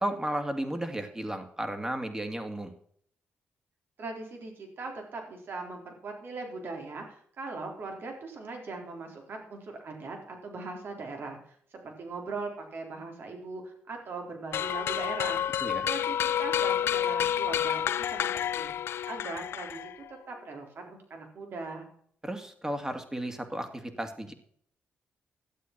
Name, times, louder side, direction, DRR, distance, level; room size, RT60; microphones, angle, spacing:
voice 1, 0.0-2.7 15.6-15.9 22.2-24.3, right 1 dB, 15° right, 6 dB, 2.4 m, -34 dB
voice 2, 4.0-11.4 11.7-15.4 15.8-18.8 19.1-19.9 20.3-21.9, right 3 dB, 60° right, 2 dB, 3.8 m, -40 dB
sound 1, 14.5-20.1, left 10 dB, 70° left, 0.4 m, -29 dB
12.0 x 8.4 x 6.0 m, 0.63 s
cardioid pair, 70°, 4 cm